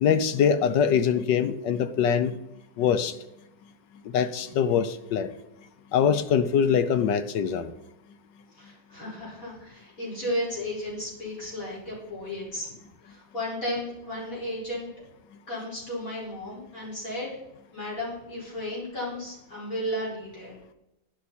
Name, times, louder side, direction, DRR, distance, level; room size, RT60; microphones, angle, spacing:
voice 1, 0.0-2.3 2.8-3.2 4.1-5.3 5.9-7.7, left 7 dB, 75° left, 12 dB, 1.2 m, -23 dB
voice 2, 8.6-12.7 13.0-14.9 15.5-17.3 17.7-20.5, left 1 dB, 40° left, -6 dB, 5.5 m, -34 dB
11.0 x 9.9 x 4.2 m, 0.88 s
omnidirectional pair, 2.1 m